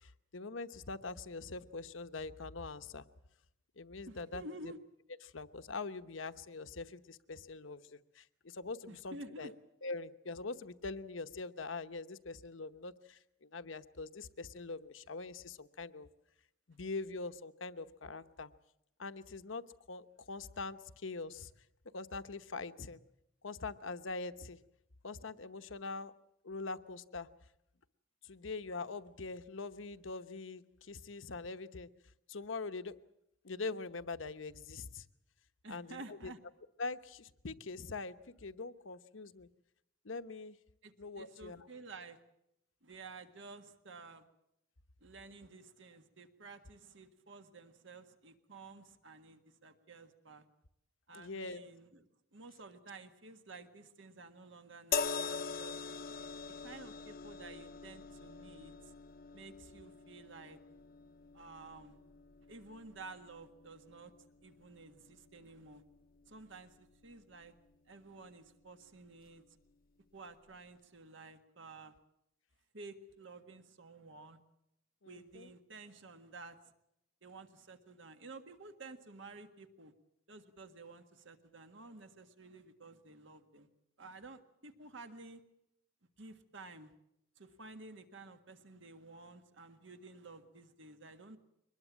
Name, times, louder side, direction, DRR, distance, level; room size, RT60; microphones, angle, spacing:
voice 1, 0.0-3.0 3.8-4.7 5.2-9.5 9.8-16.1 16.7-18.5 19.0-21.5 21.9-23.0 23.4-24.6 25.0-26.1 26.4-27.3 28.2-31.9 32.3-33.0 33.4-35.0 35.7-36.3 36.8-39.5 40.0-40.6 41.0-41.7 51.1-51.6 75.0-75.5, left 3 dB, 75° left, 11 dB, 1.0 m, -43 dB
voice 2, 4.1-4.8 8.9-9.5 35.6-36.4 40.8-42.2 42.8-44.2 45.0-50.4 51.1-52.1 52.3-55.8 56.6-58.9 59.3-60.6 61.3-62.0 62.5-64.1 64.4-65.8 66.3-67.6 67.9-69.4 70.1-71.9 72.7-74.4 75.1-76.6 77.2-79.9 80.3-83.7 84.0-85.4 86.2-86.9 87.4-91.4, right 3 dB, 65° right, 8 dB, 1.7 m, -52 dB
sound 1, 54.9-68.2 69.2-69.4, left 5 dB, 50° left, 0.7 m, -44 dB
23.5 x 20.5 x 7.4 m, 0.82 s
head